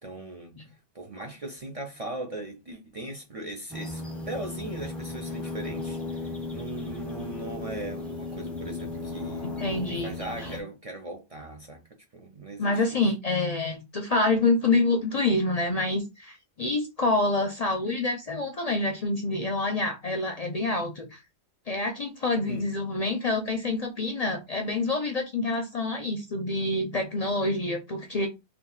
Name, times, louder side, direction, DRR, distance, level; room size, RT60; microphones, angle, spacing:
voice 1, 0.0-9.5 9.9-11.8 12.1-13.0 22.5-22.6, right 1 dB, 40° right, 0.5 m, -39 dB
sound 1, 3.7-10.6, left 2 dB, ahead, 0.6 m, -36 dB
voice 2, 9.6-10.1 12.6-21.2 21.7-28.3, left 2 dB, 45° left, 0.5 m, -27 dB
2.9 x 2.4 x 3.8 m
omnidirectional pair, 1.1 m